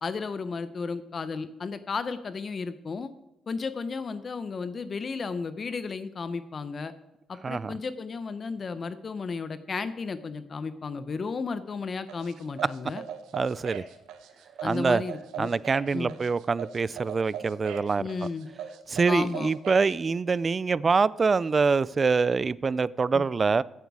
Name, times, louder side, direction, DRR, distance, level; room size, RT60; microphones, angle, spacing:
voice 1, 0.0-3.1 3.5-6.9 7.3-13.0 14.6-15.5 15.9-16.1 18.0-18.5 19.1-19.5 23.1-23.2, left 4 dB, 40° left, 12 dB, 0.7 m, -33 dB
sound 1, 12.1-19.9, right 8 dB, 85° right, 1.1 m, -40 dB
voice 2, 13.3-13.8 14.6-15.0 15.4-18.1 18.9-23.6, right 4 dB, 35° right, 21 dB, 0.4 m, -25 dB
14.0 x 8.1 x 4.8 m, 0.94 s
cardioid pair, 90°, 0 cm